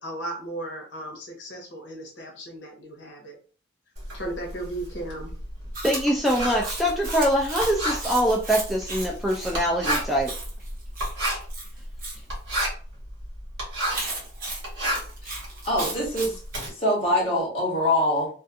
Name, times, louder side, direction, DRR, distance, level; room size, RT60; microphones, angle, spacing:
voice 1, 0.0-3.4 4.1-5.3, right 1 dB, 70° left, 0 dB, 0.9 m, -36 dB
Writing, 3.9-14.2 14.5-16.7, right 1 dB, 65° right, 1.3 m, -31 dB
Chewing mastication, 5.7-12.2 13.9-16.7, right 2 dB, 45° right, 0.9 m, -36 dB
voice 2, 5.8-10.3, equal, ahead, -2 dB, 0.3 m, -23 dB
voice 3, 15.6-16.4 16.7-18.3, left 1 dB, 30° left, -4 dB, 1.2 m, -24 dB
2.4 x 2.4 x 2.5 m, 0.40 s
head